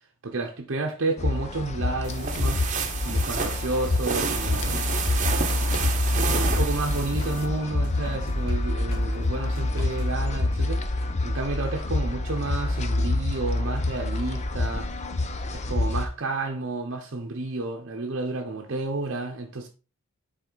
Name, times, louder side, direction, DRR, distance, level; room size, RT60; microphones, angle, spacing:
voice 1, 0.2-2.6 3.0-4.8 6.1-14.9 15.5-19.7, right 3 dB, 60° right, 0.8 m, -31 dB
sound 1, 1.2-16.1, left 2 dB, 35° left, 0.7 m, -27 dB
sound 2, 2.0-7.5, right 5 dB, 35° right, 1.0 m, -30 dB
sound 3, 3.9-5.1 5.5-8.5 8.9-10.1, left 2 dB, 50° left, 2.1 m, -44 dB
7.5 x 4.3 x 4.0 m
head